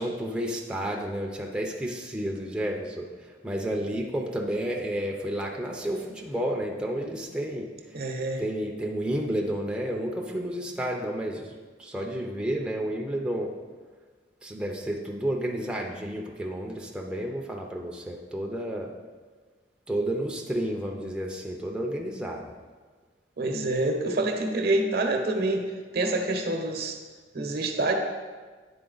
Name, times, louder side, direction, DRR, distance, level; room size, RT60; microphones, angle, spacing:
voice 1, 0.0-7.7 8.4-11.5 11.8-13.5 14.4-18.9 19.9-22.5, right 1 dB, 5° right, -1 dB, 0.5 m, -31 dB
voice 2, 7.9-8.4 23.4-27.0 27.3-27.9, right 2 dB, 60° right, 4 dB, 0.8 m, -27 dB
9.7 x 4.2 x 3.9 m, 1.4 s
head